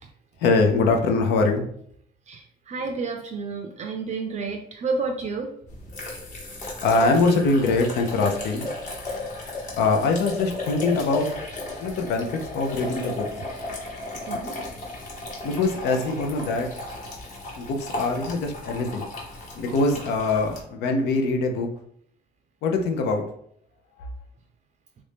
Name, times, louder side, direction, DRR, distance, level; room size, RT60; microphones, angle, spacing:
voice 1, 0.4-1.6 6.8-8.7 9.8-11.3 11.8-13.3 15.4-16.7 17.6-19.1 19.6-21.7 22.6-23.2 24.0-24.1, left 3 dB, 80° left, 3 dB, 0.6 m, -23 dB
voice 2, 2.3-5.5 14.3-14.6, right 4 dB, 45° right, 4 dB, 0.4 m, -30 dB
sound 1, 5.7-20.6, left 2 dB, 50° left, 1.1 m, -34 dB
3.1 x 2.5 x 3.4 m, 0.66 s
cardioid pair, 110°, 17 cm